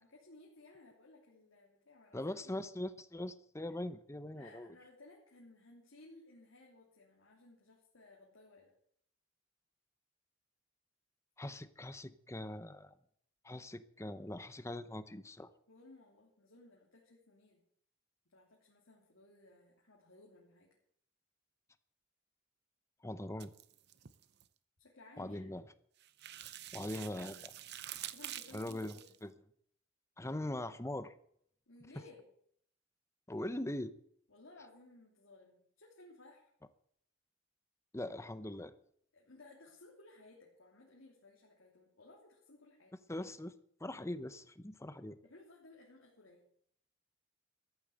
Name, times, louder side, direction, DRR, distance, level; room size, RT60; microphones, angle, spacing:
voice 1, 0.0-2.2 2.4-2.6 3.7-3.8 4.3-8.7 15.7-17.6 18.3-20.8 24.8-25.5 28.1-28.8 29.0-29.2 31.7-32.3 34.3-36.4 39.1-42.9 45.2-46.5, left 2 dB, 85° left, -3 dB, 3.2 m, -59 dB
voice 2, 2.1-4.7 11.4-12.9 13.4-15.5 23.0-23.5 25.2-25.6 26.7-27.5 28.5-29.0 29.2-29.3 30.2-31.1 33.3-33.9 37.9-38.7 43.1-43.5 43.8-45.2, left 1 dB, 15° left, 12 dB, 0.8 m, -41 dB
sound 1, 23.4-24.5 26.0-29.2, right 12 dB, 55° right, 0.7 m, -47 dB
14.0 x 8.8 x 7.9 m, 0.67 s
head